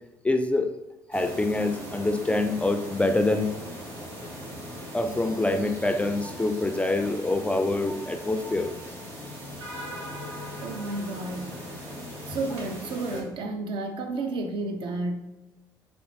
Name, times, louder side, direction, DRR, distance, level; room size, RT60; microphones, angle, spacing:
voice 1, 0.2-0.7 1.1-3.5 4.9-8.7, left 2 dB, 10° left, 7 dB, 0.3 m, -25 dB
sound 1, 1.1-13.2, equal, 70° right, 1.2 m, -39 dB
voice 2, 10.6-11.8 12.1-15.2, right 2 dB, 55° right, 5 dB, 0.5 m, -32 dB
4.1 x 3.2 x 2.8 m, 1.1 s
hypercardioid pair, 50°, 10 cm